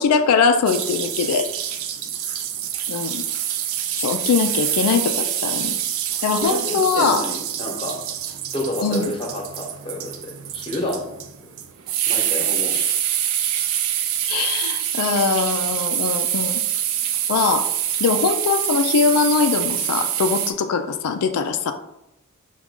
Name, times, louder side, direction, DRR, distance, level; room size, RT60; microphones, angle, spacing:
voice 1, 0.0-1.5 2.9-3.2 4.0-5.8 6.2-7.2 8.8-9.1 12.7-13.0 14.3-16.6 17.3-17.7 18.0-21.7, left 5 dB, 90° left, 7 dB, 0.4 m, -21 dB
sound 1, 0.7-20.5, right 10 dB, 65° right, 0.4 m, -25 dB
voice 2, 6.4-8.0 8.5-11.1 12.0-12.8, left 1 dB, 25° left, 1 dB, 0.9 m, -29 dB
6.1 x 2.3 x 3.6 m, 0.85 s
head